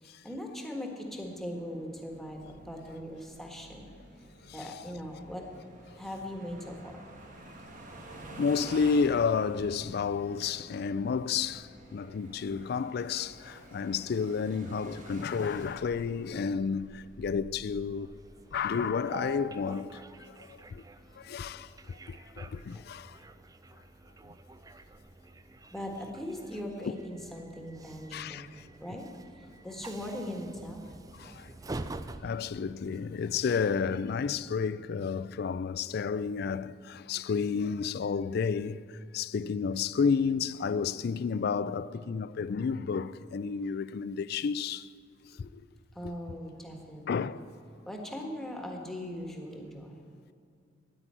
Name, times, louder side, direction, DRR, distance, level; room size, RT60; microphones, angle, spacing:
voice 1, 0.0-3.9 4.5-5.5 6.0-7.0 25.7-28.4 28.8-29.1 29.6-30.9 45.9-47.3 47.9-50.0, equal, ahead, 1.5 m, -40 dB
sound 1, 1.1-19.2, right 1 dB, 45° right, 1.5 m, -50 dB
voice 2, 8.3-18.1 18.5-20.8 21.2-23.2 26.9-27.0 28.1-28.6 31.1-31.5 32.2-44.9 45.3-45.6 46.0-46.1 47.1-47.5, left 5 dB, 55° left, 0.4 m, -31 dB
Train, 17.6-34.9, right 2 dB, 20° right, 0.4 m, -47 dB
9.9 x 9.4 x 8.9 m
head